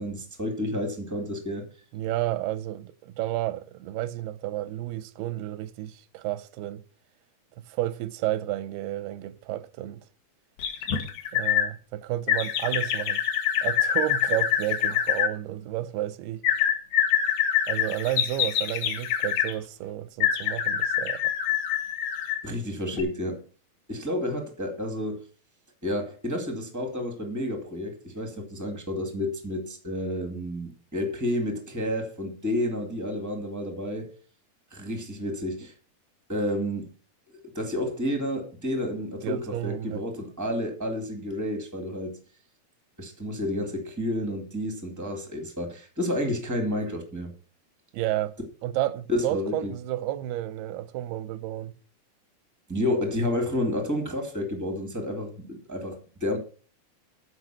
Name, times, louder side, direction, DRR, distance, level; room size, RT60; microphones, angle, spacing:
voice 1, 0.0-1.7 22.4-23.4 23.9-25.2 25.8-34.1 34.7-35.7 36.3-36.9 37.5-42.2 43.0-47.3 49.1-49.7 52.7-56.4, left 1 dB, 25° right, 0.4 m, -30 dB
voice 2, 1.9-6.8 7.7-10.0 11.3-13.2 13.6-16.4 17.7-21.3 39.2-40.0 47.9-48.4 48.6-51.7, right 14 dB, 85° right, 2.7 m, -31 dB
sound 1, 10.6-11.7 12.3-15.3 16.4-19.5 20.2-22.5 22.9-23.0, left 10 dB, 70° left, 3.3 m, -25 dB
14.0 x 5.6 x 5.9 m
omnidirectional pair, 4.4 m